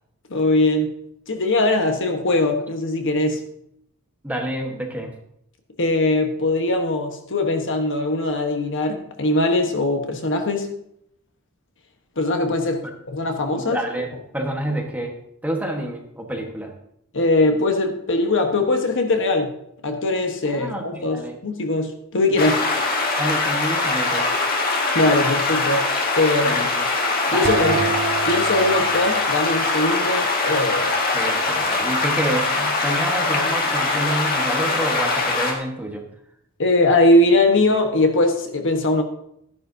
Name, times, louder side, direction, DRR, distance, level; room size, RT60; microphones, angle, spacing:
voice 1, 0.3-0.9 1.3-3.4 5.8-10.7 12.2-13.8 17.1-19.5 19.8-22.6 24.9-25.9 26.2-26.6 27.3-27.8 28.3-31.0 36.6-39.0, left 2 dB, 60° left, 5 dB, 1.2 m, -21 dB
voice 2, 4.2-5.1 13.5-15.2 15.4-16.7 20.5-21.4 23.2-24.3 26.4-26.9 27.3-27.9 31.1-36.0, right 1 dB, 5° right, 1 dB, 1.3 m, -28 dB
sound 1, 22.4-35.5, left 3 dB, 45° left, 1.9 m, -22 dB
sound 2, 27.4-30.2, right 5 dB, 50° right, 0.7 m, -29 dB
13.5 x 10.5 x 2.7 m, 0.75 s
head